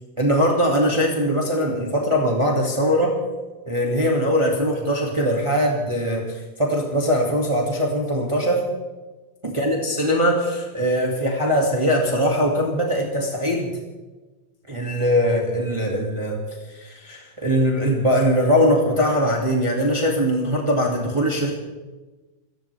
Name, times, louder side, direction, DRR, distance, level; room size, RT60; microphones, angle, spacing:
voice 1, 0.2-3.2 3.7-8.7 9.4-13.8 14.7-16.4 16.7-21.6, equal, 15° right, -1 dB, 2.1 m, -21 dB
27.0 x 15.5 x 3.4 m, 1.2 s
omnidirectional pair, 2.1 m